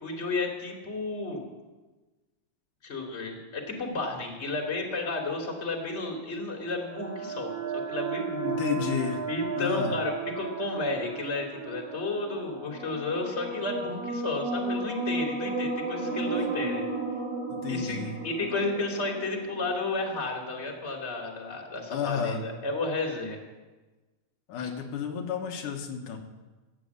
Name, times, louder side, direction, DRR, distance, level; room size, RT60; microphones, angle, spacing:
voice 1, 0.0-1.4 2.8-8.6 9.3-16.8 17.7-23.4 24.6-24.7, left 3 dB, 20° left, 1 dB, 2.6 m, -32 dB
sound 1, 6.6-20.3, right 3 dB, 70° right, 3.3 m, -34 dB
voice 2, 8.4-9.2 9.6-10.0 17.5-18.1 21.9-22.4 24.5-26.2, left 7 dB, 90° left, 2 dB, 2.9 m, -31 dB
14.5 x 9.2 x 8.3 m, 1.2 s
omnidirectional pair, 3.6 m